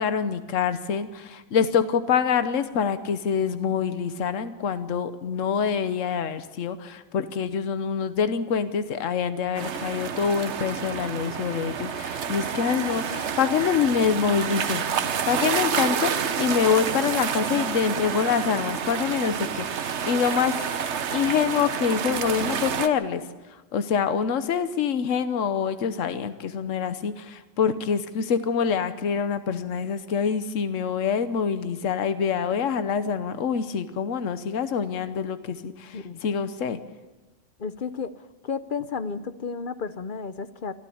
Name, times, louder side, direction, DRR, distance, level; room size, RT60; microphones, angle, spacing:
voice 1, 0.0-14.8 15.3-20.6 21.1-23.2 23.7-36.8, left 7 dB, 70° left, 11 dB, 1.3 m, -26 dB
sound 1, 9.6-22.9, right 7 dB, 60° right, 1.1 m, -29 dB
voice 2, 37.6-38.1 38.4-40.7, left 5 dB, 45° left, 12 dB, 0.8 m, -32 dB
26.0 x 12.5 x 8.6 m, 1.2 s
omnidirectional pair, 1.4 m